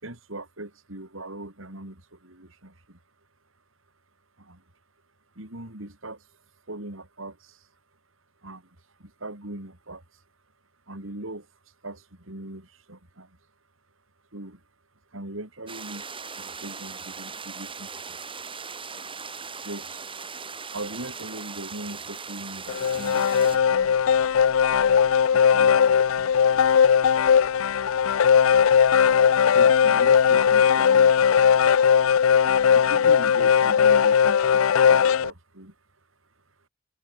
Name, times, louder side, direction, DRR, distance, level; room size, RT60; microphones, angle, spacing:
voice 1, 0.0-3.0 4.4-4.6 5.3-6.3 6.7-7.7 8.4-10.2 10.9-11.5 11.8-13.4 14.3-14.6 15.1-16.1 16.4-18.2 19.6-20.0 20.7-24.2 25.3-26.7 27.6-27.7 29.4-31.7 32.7-35.7, right 1 dB, 70° right, 4.7 m, -40 dB
sound 1, 15.7-23.6, right 5 dB, 25° right, 6.0 m, -39 dB
sound 2, 22.7-35.3, left 7 dB, 75° left, 0.4 m, -19 dB
head